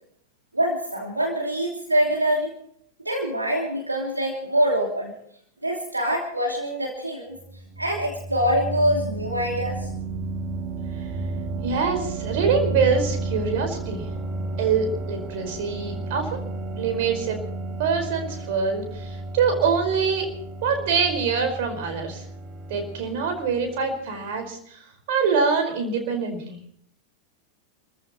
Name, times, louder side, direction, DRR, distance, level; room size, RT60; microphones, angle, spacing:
voice 1, 0.5-2.5 3.0-5.2 5.6-7.4 7.8-9.9, equal, 85° right, -1 dB, 2.9 m, -24 dB
sound 1, 7.3-24.1, right 2 dB, 30° right, 2.7 m, -33 dB
voice 2, 11.6-14.0 14.6-16.4 16.7-17.4 17.8-20.3 20.6-22.2 22.7-24.8 25.1-26.6, right 5 dB, 50° right, 5 dB, 5.0 m, -24 dB
29.0 x 14.5 x 3.1 m, 0.65 s
figure-of-eight pair, 90°, 0 cm